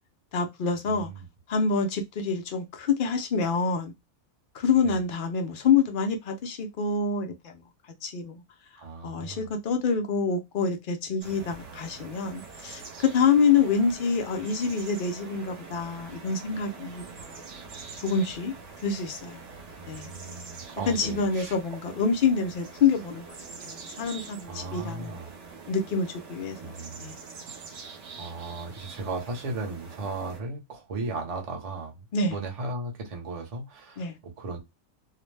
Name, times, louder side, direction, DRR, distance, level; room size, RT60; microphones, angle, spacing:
voice 1, 0.3-1.1 1.5-3.9 4.5-7.5 8.0-8.4 9.0-17.4 18.0-18.5 18.8-19.4 19.9-20.1 20.9-23.2 23.7-25.2 25.7-26.7 27.0-27.2 32.1-32.4 34.0-34.2, left 5 dB, 70° left, 0.4 m, -26 dB
voice 2, 0.8-1.3 4.8-5.0 8.8-9.5 19.8-21.6 24.4-25.3 26.6-27.1 28.2-34.6, right 3 dB, 35° right, 0.7 m, -36 dB
sound 1, 11.2-30.4, right 4 dB, 60° right, 1.0 m, -45 dB
2.5 x 2.1 x 3.2 m
omnidirectional pair, 1.5 m